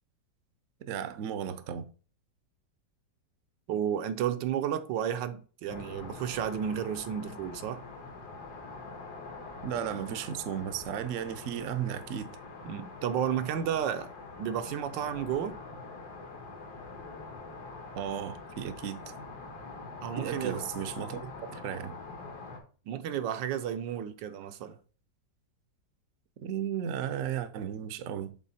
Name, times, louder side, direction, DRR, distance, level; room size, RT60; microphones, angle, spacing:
voice 1, 0.9-1.9 9.6-12.3 17.9-19.1 20.2-22.0 26.4-28.4, right 9 dB, 65° right, 0.8 m, -35 dB
voice 2, 3.7-7.8 12.6-14.1 14.4-15.6 20.0-20.6 22.9-24.8, right 9 dB, 85° right, 1.3 m, -32 dB
sound 1, 5.7-22.6, left 3 dB, 65° left, 1.9 m, -44 dB
7.4 x 3.8 x 4.1 m
omnidirectional pair, 2.0 m